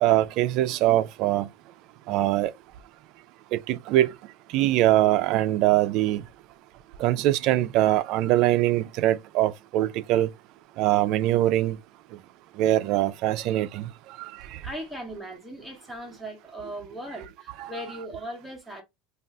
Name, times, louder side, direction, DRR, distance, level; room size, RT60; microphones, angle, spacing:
voice 1, 0.0-1.5 2.1-2.5 3.5-4.2 4.5-6.2 7.0-10.3 10.8-11.8 12.6-14.6 17.6-17.8, right 14 dB, 55° right, 0.3 m, -23 dB
voice 2, 14.6-18.8, right 1 dB, 5° right, 0.8 m, -38 dB
2.5 x 2.4 x 3.2 m
supercardioid pair, 125°, 0 cm